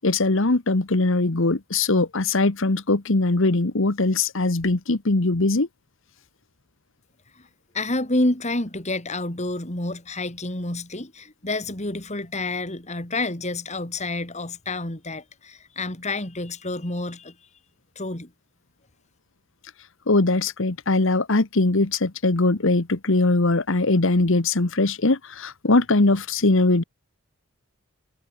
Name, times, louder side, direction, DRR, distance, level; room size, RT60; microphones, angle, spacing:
voice 1, 0.0-5.7 20.1-26.8, left 2 dB, 65° left, 1.3 m, -21 dB
voice 2, 7.7-17.3 17.9-18.3, left 2 dB, 30° left, 3.1 m, -29 dB
head